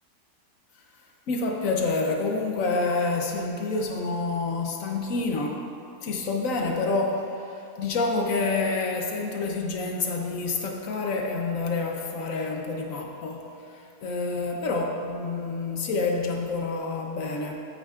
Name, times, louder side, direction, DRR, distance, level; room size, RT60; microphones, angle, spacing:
voice 1, 1.3-5.6 6.0-17.5, left 3 dB, 55° left, 1 dB, 1.2 m, -28 dB
12.0 x 8.4 x 2.5 m, 2.7 s
omnidirectional pair, 1.8 m